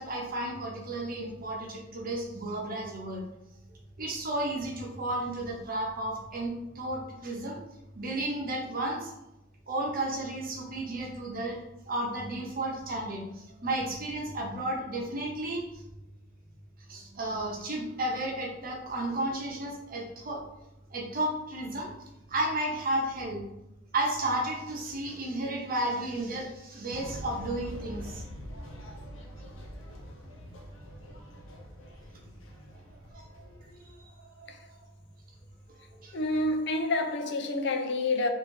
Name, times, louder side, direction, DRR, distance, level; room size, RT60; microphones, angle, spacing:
voice 1, 0.0-3.2 4.0-7.6 7.9-9.1 9.7-15.8 16.9-20.4 20.9-21.9 22.3-23.4 23.9-28.2 33.1-34.6 36.0-36.1, right 1 dB, 50° right, 0.9 m, -33 dB
sound 1, 26.9-33.9, equal, 85° left, 0.8 m, -44 dB
voice 2, 36.1-38.3, left 2 dB, 60° left, 0.6 m, -28 dB
4.0 x 2.7 x 4.7 m
head